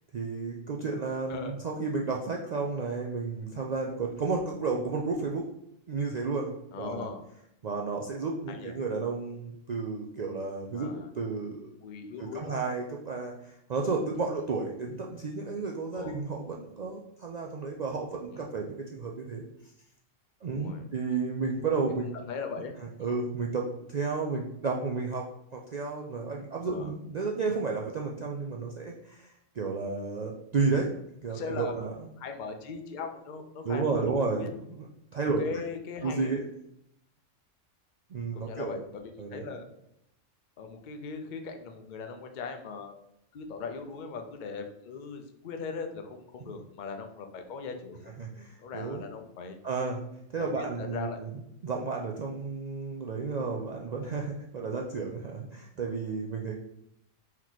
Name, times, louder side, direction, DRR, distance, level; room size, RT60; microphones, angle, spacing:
voice 1, 0.1-5.5 5.9-6.5 6.8-7.1 7.6-11.7 12.2-19.4 20.4-22.1 22.8-25.3 25.5-30.9 31.2-32.0 33.6-34.5 35.1-35.4 36.0-36.4 38.1-38.8 39.2-39.5 46.4-46.5 48.2-49.0 49.6-50.0 50.3-51.3 51.6-56.5, right 4 dB, 70° right, 0 dB, 0.4 m, -32 dB
voice 2, 6.7-7.2 8.5-8.8 10.7-11.1 11.8-12.6 14.1-14.2 15.9-16.2 18.3-18.4 20.5-20.9 21.9-22.0 22.2-22.7 26.7-26.9 31.3-31.7 32.2-34.0 34.4-34.5 35.4-36.4 38.3-39.7 40.6-43.0 43.3-48.1 48.6-49.6 50.4-51.2, left 5 dB, 50° left, 5 dB, 0.6 m, -39 dB
4.4 x 3.0 x 4.0 m, 0.77 s
omnidirectional pair, 1.3 m